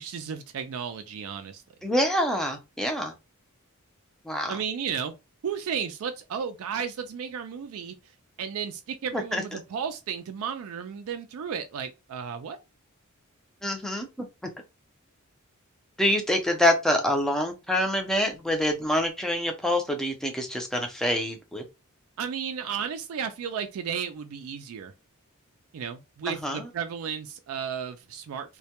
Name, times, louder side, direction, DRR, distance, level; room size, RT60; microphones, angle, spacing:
voice 1, 0.0-1.6 4.5-5.1 5.4-7.9 8.4-12.6 22.2-24.9 25.7-28.6, right 7 dB, 65° right, 0.3 m, -33 dB
voice 2, 1.8-3.1 4.2-4.6 9.1-9.6 13.6-14.1 16.0-21.6 26.3-26.7, left 1 dB, ahead, 0.4 m, -26 dB
2.2 x 2.1 x 2.8 m
head